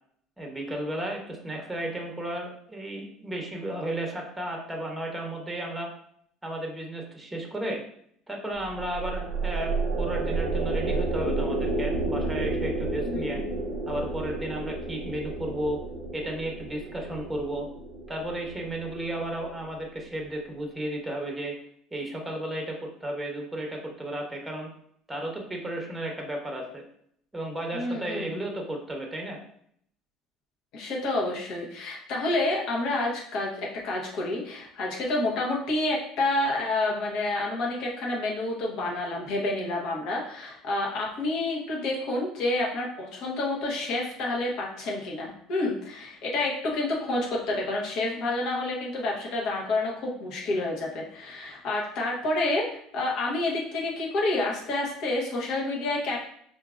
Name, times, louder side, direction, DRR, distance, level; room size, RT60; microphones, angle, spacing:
voice 1, 0.4-5.9 6.4-7.8 8.3-13.4 13.9-15.8 16.1-17.7 18.1-21.5 21.9-24.7 25.1-26.8 27.3-29.4, right 1 dB, 10° right, 1 dB, 0.9 m, -33 dB
sound 1, 8.6-20.0, right 3 dB, 60° right, 0.6 m, -31 dB
voice 2, 13.0-13.6 27.7-28.5 30.7-56.2, left 2 dB, 65° left, -2 dB, 1.2 m, -29 dB
4.5 x 2.6 x 2.5 m, 0.66 s
supercardioid pair, 115°, 0 cm